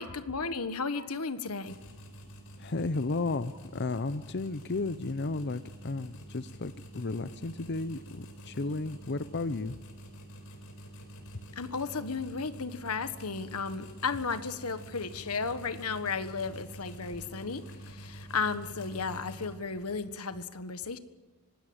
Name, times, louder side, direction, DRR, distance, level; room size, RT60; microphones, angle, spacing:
voice 1, 0.0-1.8 11.5-21.0, left 4 dB, 85° left, 11 dB, 1.5 m, -34 dB
sound 1, 1.6-20.0, right 1 dB, 65° left, 4.8 m, -48 dB
voice 2, 2.6-9.8, left 3 dB, 50° left, 13 dB, 0.7 m, -33 dB
25.0 x 19.5 x 8.8 m, 1.2 s
head